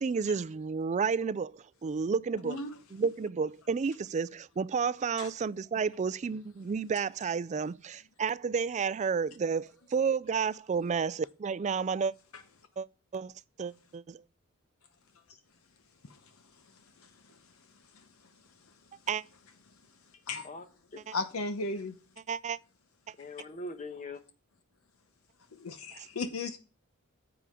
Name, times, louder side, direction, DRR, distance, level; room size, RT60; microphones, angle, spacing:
voice 1, 0.0-2.6 2.9-12.1 12.8-12.9 13.1-13.3 13.6-14.2 19.1-19.2 21.1-21.2 22.3-22.6 25.9-26.1, right 5 dB, 30° right, 0.3 m, -31 dB
voice 2, 2.4-2.7 5.2-5.3 16.1-16.2 17.0-17.4 17.9-18.0 20.3-20.5 21.1-22.0 25.5-26.6, left 3 dB, 70° left, 0.8 m, -36 dB
voice 3, 23.2-24.2, left 2 dB, 35° left, 1.0 m, -41 dB
9.8 x 7.0 x 3.6 m
head